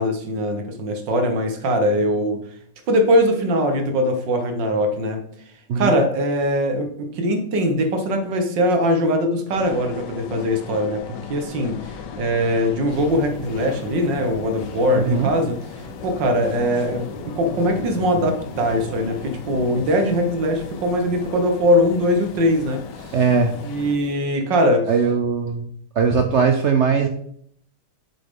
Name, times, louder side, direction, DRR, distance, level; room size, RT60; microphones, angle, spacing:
voice 1, 0.0-2.4 2.9-5.2 5.8-15.6 16.0-23.1 23.6-24.9, equal, 90° right, 5 dB, 1.9 m, -21 dB
sound 1, 9.5-24.0, left 7 dB, 80° left, 1.4 m, -38 dB
sound 2, 12.9-24.1, left 1 dB, 30° left, 1.1 m, -38 dB
voice 2, 15.0-15.3 23.1-23.6 24.9-25.7 26.0-27.1, right 5 dB, 65° right, 5 dB, 0.7 m, -19 dB
7.6 x 6.9 x 3.7 m, 0.66 s
omnidirectional pair, 1.9 m